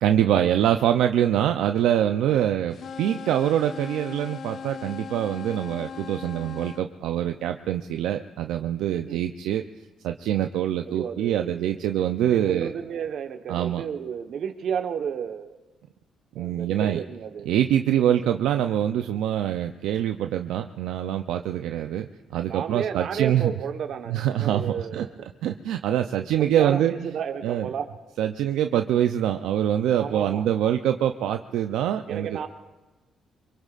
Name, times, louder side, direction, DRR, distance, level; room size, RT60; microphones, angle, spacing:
voice 1, 0.0-9.6 10.0-12.7 13.5-13.8 16.4-17.0 17.5-23.5 24.1-25.1 25.4-27.1 27.4-27.7 28.2-32.4, right 11 dB, 90° right, 6 dB, 0.5 m, -24 dB
sound 1, 2.7-6.8, left 6 dB, 55° left, 0.4 m, -38 dB
voice 2, 8.9-9.2 10.9-11.9 12.3-15.6 16.3-17.5 18.0-18.3 22.4-25.1 26.4-27.9 30.0-30.5 32.1-32.5, right 7 dB, 65° right, 6 dB, 1.1 m, -32 dB
25.0 x 23.0 x 2.5 m, 1.1 s
cardioid pair, 90°, 0 cm